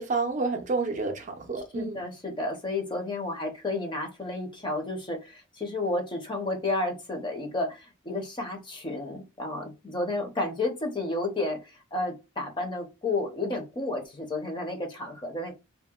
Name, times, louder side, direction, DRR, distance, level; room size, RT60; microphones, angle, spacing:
voice 1, 0.0-2.0, right 3 dB, 35° right, 0.4 m, -29 dB
voice 2, 1.7-15.5, left 2 dB, 20° left, 0.6 m, -31 dB
2.7 x 2.1 x 2.2 m
head